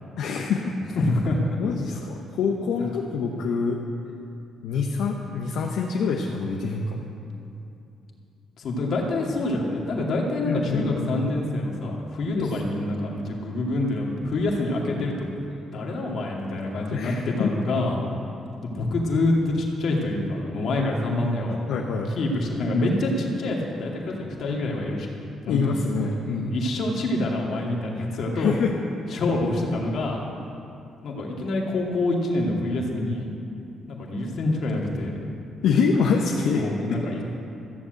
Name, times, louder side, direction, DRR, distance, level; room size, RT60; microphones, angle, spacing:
voice 1, 0.2-0.7 1.6-3.8 4.6-7.0 10.4-11.1 12.3-12.5 15.0-15.1 16.9-17.5 21.7-22.1 25.5-26.6 28.3-28.7 35.6-36.6 37.0-37.1, left 5 dB, 80° left, 0 dB, 1.0 m, -25 dB
voice 2, 0.9-1.4 8.6-15.3 15.7-18.0 18.6-21.6 22.2-25.2 25.5-25.8 26.5-28.5 29.1-30.2 31.0-33.3 33.9-35.3 36.5-37.2, left 2 dB, 65° left, -1 dB, 2.4 m, -26 dB
14.5 x 7.3 x 7.8 m, 2.7 s
cardioid pair, 90°, 0 cm